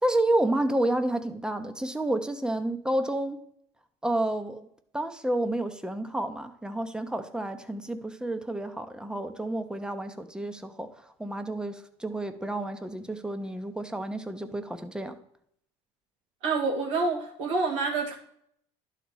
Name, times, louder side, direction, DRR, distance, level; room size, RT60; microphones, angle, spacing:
voice 1, 0.0-3.4 4.0-4.7 4.9-10.9 11.2-15.2, right 1 dB, 5° right, 0.9 m, -30 dB
voice 2, 16.4-18.2, right 4 dB, 90° right, 1.9 m, -27 dB
11.5 x 4.1 x 4.7 m
supercardioid pair, 80°, 15 cm